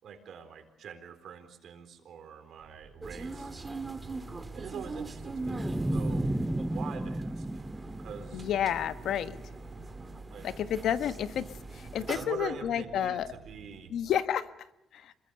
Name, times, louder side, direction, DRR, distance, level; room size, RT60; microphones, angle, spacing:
voice 1, 0.0-3.5 4.5-7.6 8.0-8.4 10.3-10.5 12.0-13.9, right 7 dB, 70° right, 8 dB, 4.1 m, -44 dB
sound 1, 2.6-14.2, right 6 dB, 85° right, 5.8 m, -55 dB
sound 2, 3.0-12.3, right 3 dB, 25° right, 2.2 m, -42 dB
sound 3, 5.5-8.7, right 1 dB, 10° right, 1.1 m, -32 dB
voice 2, 8.3-9.4 10.4-11.4 11.7-13.3 13.9-14.5 14.9-15.1, left 9 dB, 75° left, 12 dB, 1.3 m, -30 dB
26.5 x 22.0 x 6.9 m, 0.85 s
cardioid pair, 90°, 0 cm